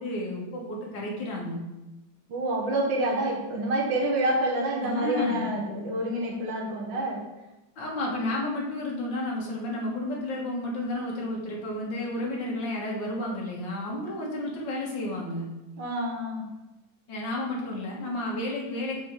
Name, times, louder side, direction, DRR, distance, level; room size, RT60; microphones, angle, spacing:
voice 1, 0.0-1.6 4.8-5.5 7.8-15.4 17.1-19.0, left 1 dB, 70° left, -2 dB, 2.4 m, -31 dB
voice 2, 2.3-7.3 15.8-16.5, right 1 dB, 75° right, -2 dB, 2.0 m, -28 dB
6.8 x 5.9 x 4.7 m, 1.0 s
omnidirectional pair, 2.1 m